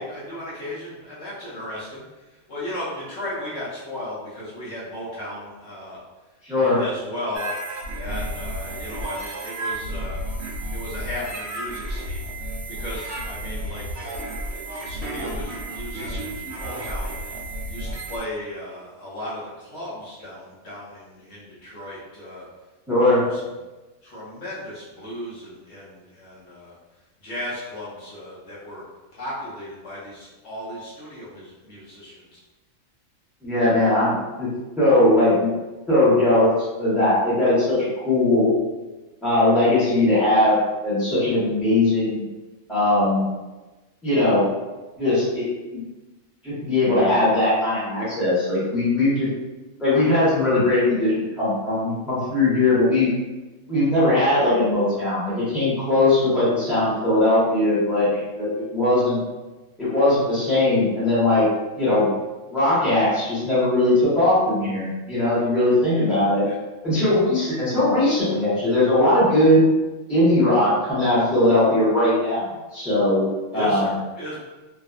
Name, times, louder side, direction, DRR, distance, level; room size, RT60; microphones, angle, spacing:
voice 1, 0.0-2.0 2.3-6.0 6.6-7.5 7.9-10.2 10.7-12.5 12.8-17.1 17.7-22.5 22.9-23.4 24.0-26.7 27.2-28.8 29.1-32.4 66.4-66.6 67.7-67.9 73.5-74.4, left 1 dB, 65° left, -8 dB, 1.0 m, -36 dB
voice 2, 6.5-6.8 22.9-23.2 33.4-34.5 34.8-35.5 35.9-36.5 36.8-38.5 39.2-42.3 42.7-43.2 44.0-44.5 45.0-45.8 46.4-49.3 49.8-53.1 53.7-59.2 59.8-61.5 61.8-62.1 62.5-66.4 66.8-69.6 70.1-73.8, left 1 dB, ahead, -11 dB, 0.9 m, -20 dB
sound 1, 7.3-18.2, right 1 dB, 65° right, 0.7 m, -32 dB
2.6 x 2.3 x 2.3 m, 1.1 s
omnidirectional pair, 1.4 m